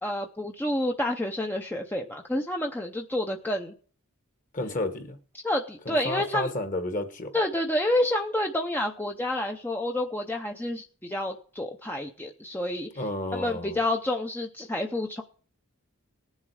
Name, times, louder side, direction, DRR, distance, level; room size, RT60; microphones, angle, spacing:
voice 1, 0.0-3.7 4.6-4.7 5.4-6.5 7.3-13.0 13.3-15.2, left 1 dB, 10° left, 3 dB, 0.6 m, -29 dB
voice 2, 4.5-5.2 5.8-7.4 12.9-13.8, left 1 dB, 35° left, 7 dB, 1.4 m, -31 dB
19.0 x 7.3 x 4.8 m, 0.43 s
head